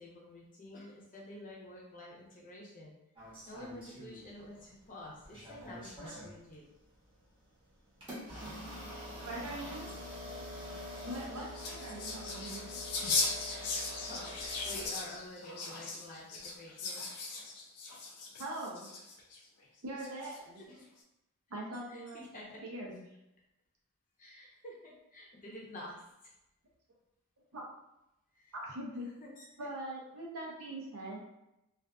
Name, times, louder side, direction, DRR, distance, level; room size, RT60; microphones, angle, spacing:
voice 1, 0.0-3.0 3.5-6.6 11.4-12.1 13.5-13.7 14.0-17.1 20.7-20.9 21.9-22.6 24.2-26.0 28.3-28.6 29.2-29.7, left 1 dB, 40° left, -4 dB, 0.7 m, -49 dB
sound 1, 3.2-4.6 5.0-6.3 7.0-7.2 8.0-14.9, left 1 dB, 25° right, 0.9 m, -45 dB
voice 2, 9.2-9.9 11.0-12.6 18.4-18.9 19.8-20.6 21.5-23.0 27.5-27.6 28.5-29.1 29.6-31.2, right 1 dB, 75° right, -2 dB, 0.6 m, -42 dB
sound 2, 11.0-19.4 20.0-20.6, left 3 dB, 85° left, 0.5 m, -38 dB
2.5 x 2.4 x 2.2 m, 0.88 s
head